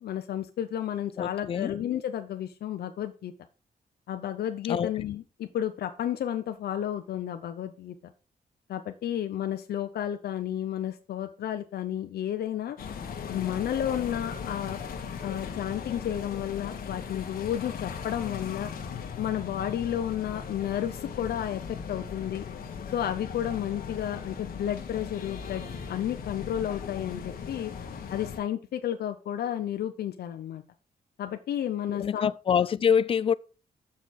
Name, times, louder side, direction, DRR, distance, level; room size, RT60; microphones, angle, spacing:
voice 1, 0.0-3.3 4.1-7.9 8.7-12.8 13.3-14.8 15.2-18.7 19.2-22.5 22.9-27.7 28.1-30.6 31.2-32.3, left 10 dB, 90° left, 0.8 m, -32 dB
voice 2, 1.2-1.8 4.7-4.9 31.9-33.3, left 7 dB, 35° left, 0.4 m, -25 dB
sound 1, 12.8-28.4, left 6 dB, 70° left, 1.6 m, -38 dB
7.5 x 5.8 x 6.4 m
wide cardioid pair, 175°, 16 cm